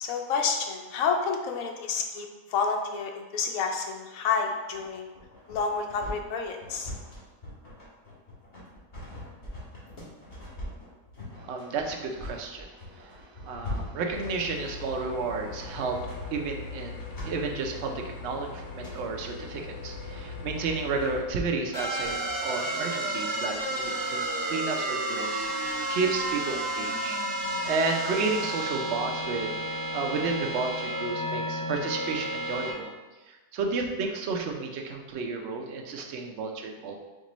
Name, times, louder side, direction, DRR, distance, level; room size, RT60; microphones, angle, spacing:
voice 1, 0.0-5.1 5.5-6.9, left 5 dB, 70° left, 3 dB, 1.0 m, -29 dB
sound 1, 4.7-22.2, left 1 dB, 30° left, 1.4 m, -42 dB
voice 2, 11.4-16.0 16.3-17.0 17.2-27.2 27.6-32.9 33.3-37.1, right 4 dB, 60° right, 2 dB, 0.7 m, -32 dB
sound 2, 14.1-21.2, left 4 dB, 90° left, 0.4 m, -40 dB
sound 3, 21.7-32.7, right 1 dB, 50° left, 1.9 m, -31 dB
4.4 x 3.9 x 3.0 m, 1.2 s
omnidirectional pair, 1.6 m